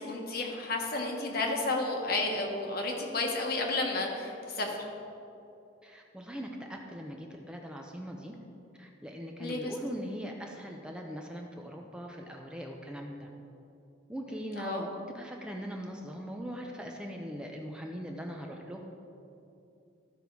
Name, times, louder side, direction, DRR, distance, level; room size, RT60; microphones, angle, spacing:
voice 1, 0.0-4.8 9.4-9.7 14.6-14.8, left 2 dB, 55° left, 1 dB, 1.3 m, -32 dB
voice 2, 5.8-8.4 8.8-13.3 14.1-14.9 15.1-18.8, equal, 5° right, 1 dB, 0.6 m, -41 dB
14.0 x 5.4 x 4.6 m, 2.7 s
head